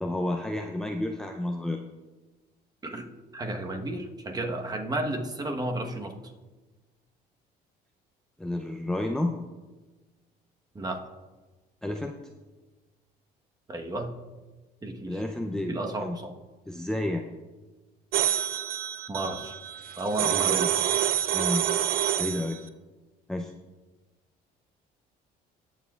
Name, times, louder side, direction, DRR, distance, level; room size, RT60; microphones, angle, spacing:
voice 1, 0.0-1.8 8.4-9.4 11.8-12.2 15.1-15.7 16.0-16.2 16.7-17.3 20.2-20.7 21.3-21.6 22.2-22.6 23.3-23.5, left 1 dB, 5° left, 2 dB, 0.5 m, -30 dB
voice 2, 3.3-6.1 10.7-11.0 13.7-14.1 14.8-15.2 15.7-16.3 19.1-19.5 20.0-20.7, right 2 dB, 25° right, 3 dB, 1.2 m, -32 dB
sound 1, 18.1-22.6, right 11 dB, 60° right, 0.5 m, -27 dB
19.0 x 7.2 x 2.4 m, 1.2 s
cardioid pair, 110°, 17 cm